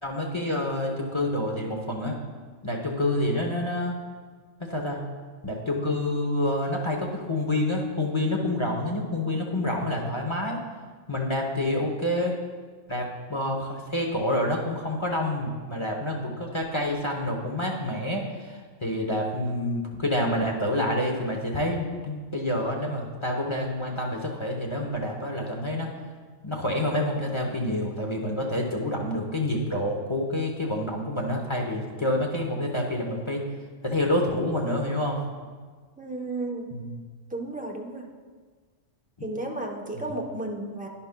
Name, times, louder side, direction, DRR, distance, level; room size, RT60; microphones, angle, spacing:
voice 1, 0.0-2.2 2.6-4.0 4.6-5.0 5.4-10.6 11.1-12.4 12.9-25.9 26.4-33.4 33.8-35.2 36.7-37.0, left 1 dB, 25° left, 0 dB, 0.8 m, -28 dB
voice 2, 36.0-36.7 37.3-38.1 39.2-40.9, right 2 dB, 10° right, 1 dB, 0.6 m, -33 dB
11.0 x 10.5 x 2.2 m, 1.5 s
omnidirectional pair, 1.4 m